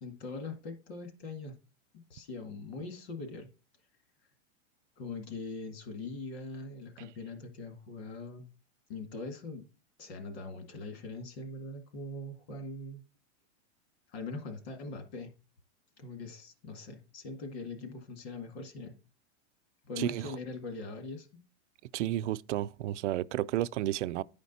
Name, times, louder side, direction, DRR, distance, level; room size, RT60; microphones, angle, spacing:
voice 1, 0.0-1.5 2.1-3.5 5.0-8.5 8.9-9.7 10.0-13.0 14.1-15.3 16.0-19.0 19.9-21.4, left 3 dB, 60° left, 2.0 m, -42 dB
voice 2, 20.0-20.4 21.9-24.2, right 13 dB, 80° right, 0.5 m, -32 dB
9.9 x 5.1 x 4.1 m
supercardioid pair, 175°, 36 cm